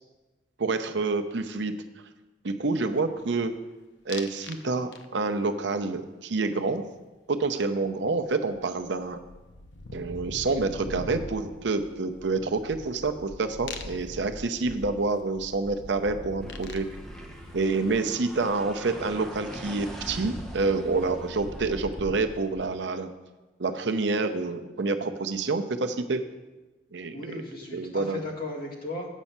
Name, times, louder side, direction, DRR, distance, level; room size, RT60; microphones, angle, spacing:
voice 1, 0.6-1.7 2.4-3.5 4.1-6.8 7.3-9.2 9.9-16.9 17.5-23.1 23.6-26.2 26.9-27.4 27.7-28.2, right 3 dB, 75° right, 7 dB, 0.7 m, -28 dB
sound 1, 4.1-4.6 4.9-5.4 7.8-7.9 8.2-18.2, left 2 dB, 85° left, 0.8 m, -42 dB
sound 2, 16.4-22.7, equal, 5° left, 1.2 m, -41 dB
voice 2, 27.1-29.1, left 2 dB, 55° left, -2 dB, 2.0 m, -36 dB
8.2 x 5.4 x 7.3 m, 1.1 s
head